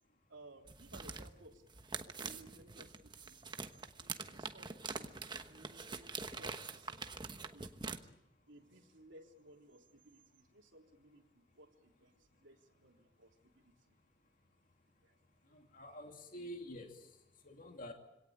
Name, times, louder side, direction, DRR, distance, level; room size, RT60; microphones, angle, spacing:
voice 1, 0.3-1.7 2.0-3.4 4.0-7.0 7.5-8.1 8.5-14.0 15.0-15.2 15.4-15.6, right 2 dB, 80° right, 3 dB, 3.3 m, -60 dB
sound 1, 0.7-8.0, right 4 dB, 25° right, 1.2 m, -45 dB
voice 2, 15.5-17.0 17.4-17.9, equal, 45° left, 4 dB, 2.4 m, -48 dB
25.5 x 17.5 x 8.7 m, 0.94 s
head